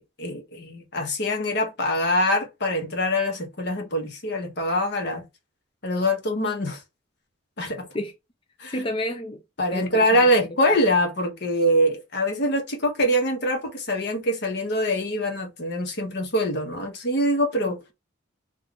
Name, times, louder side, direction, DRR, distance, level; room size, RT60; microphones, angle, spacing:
voice 1, 0.0-5.2 5.8-6.8 7.6-7.9 8.6-8.8 9.6-17.8, equal, 60° left, 1.2 m, -24 dB
voice 2, 8.7-9.4 9.7-10.5, left 1 dB, 30° left, 0.5 m, -30 dB
3.7 x 2.6 x 3.5 m
head